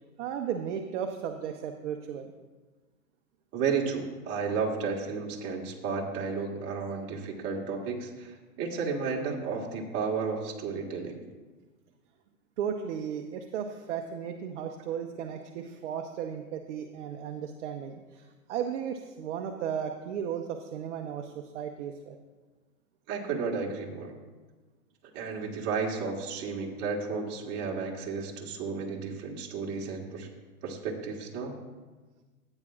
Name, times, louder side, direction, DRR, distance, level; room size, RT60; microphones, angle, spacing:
voice 1, 0.2-2.3 12.6-22.2, right 8 dB, 50° right, 5 dB, 0.8 m, -35 dB
voice 2, 3.5-11.2 23.1-24.1 25.1-30.3 30.6-31.6, right 5 dB, 30° right, -1 dB, 1.6 m, -33 dB
14.0 x 8.9 x 2.4 m, 1.3 s
hypercardioid pair, 135°, 45 cm